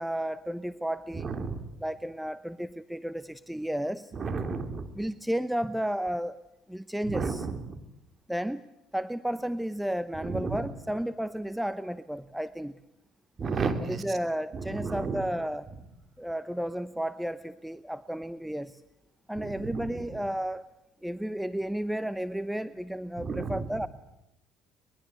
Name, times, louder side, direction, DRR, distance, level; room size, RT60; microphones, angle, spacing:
voice 1, 0.0-1.3 1.8-4.1 4.9-6.4 6.7-7.5 8.3-8.6 8.9-12.7 13.9-15.7 16.2-18.8 19.3-20.7 21.0-23.9, right 1 dB, 5° right, 14 dB, 0.8 m, -32 dB
voice 2, 1.1-1.6 4.1-4.9 7.0-7.8 10.2-10.7 13.4-14.2 14.5-15.3 19.3-20.2 23.2-23.9, right 4 dB, 40° right, 7 dB, 3.2 m, -33 dB
23.5 x 21.5 x 8.3 m, 0.85 s
supercardioid pair, 70°, 0 cm